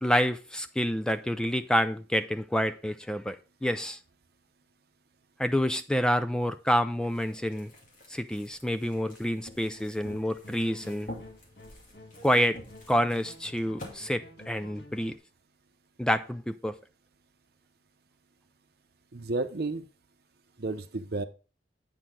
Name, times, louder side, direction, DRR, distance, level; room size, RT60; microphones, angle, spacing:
voice 1, 0.0-3.4 3.6-4.0 5.4-7.7 8.1-11.1 12.2-12.6 12.9-15.2 16.0-16.7, equal, 5° left, 0.3 m, -28 dB
sound 1, 7.0-13.9, left 1 dB, 50° left, 2.3 m, -48 dB
sound 2, 9.8-15.2, left 2 dB, 65° left, 1.4 m, -51 dB
voice 2, 19.1-19.9 20.6-21.2, right 3 dB, 60° right, 0.8 m, -32 dB
8.8 x 6.3 x 3.7 m
head